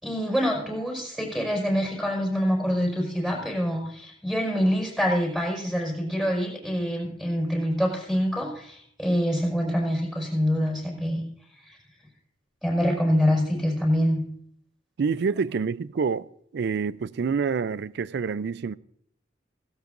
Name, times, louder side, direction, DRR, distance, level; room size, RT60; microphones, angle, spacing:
voice 1, 0.0-11.2 11.7-11.8 12.6-14.2, equal, 5° right, 4.7 m, -25 dB
voice 2, 15.0-16.3 16.5-18.7, right 5 dB, 60° right, 0.4 m, -27 dB
17.0 x 16.0 x 2.5 m
head